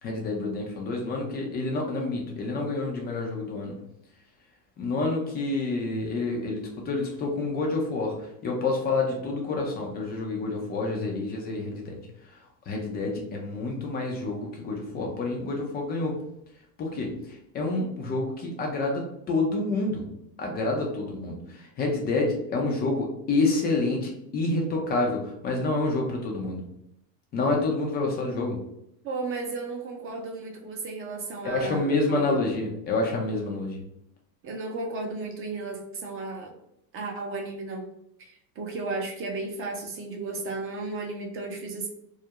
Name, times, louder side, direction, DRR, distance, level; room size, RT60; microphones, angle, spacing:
voice 1, 0.0-3.8 4.8-8.1 8.4-12.0 12.7-16.1 16.8-17.1 17.5-20.1 20.4-21.4 21.8-26.6 27.3-28.6 31.4-33.8, left 3 dB, 25° left, 1 dB, 0.3 m, -28 dB
voice 2, 29.0-32.5 34.4-36.5 36.9-37.9 38.2-41.9, right 3 dB, 30° right, 1 dB, 0.5 m, -34 dB
2.3 x 2.0 x 2.8 m, 0.78 s
hypercardioid pair, 95°, 50 cm